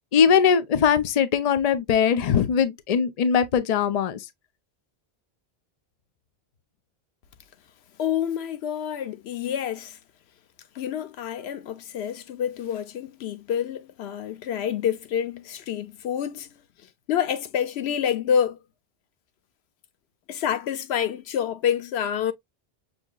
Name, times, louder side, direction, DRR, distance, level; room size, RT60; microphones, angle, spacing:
voice 1, 0.1-4.2, left 7 dB, 45° left, 0.6 m, -21 dB
voice 2, 8.0-10.0 10.8-16.5 17.1-18.6 20.3-22.3, left 9 dB, 90° left, 0.9 m, -27 dB
6.1 x 2.8 x 2.2 m
omnidirectional pair, 1.1 m